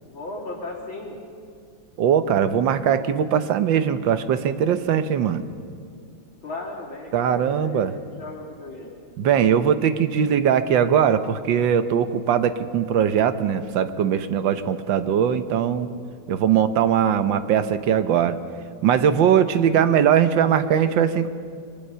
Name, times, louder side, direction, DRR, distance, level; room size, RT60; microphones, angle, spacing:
voice 1, 0.0-1.2 6.4-8.9, left 2 dB, 75° left, -2 dB, 3.8 m, -36 dB
voice 2, 2.0-5.4 7.1-8.0 9.2-15.9 16.3-18.4 18.8-21.3, right 8 dB, 70° right, 11 dB, 1.6 m, -20 dB
23.0 x 20.5 x 5.7 m, 2.2 s
omnidirectional pair, 2.2 m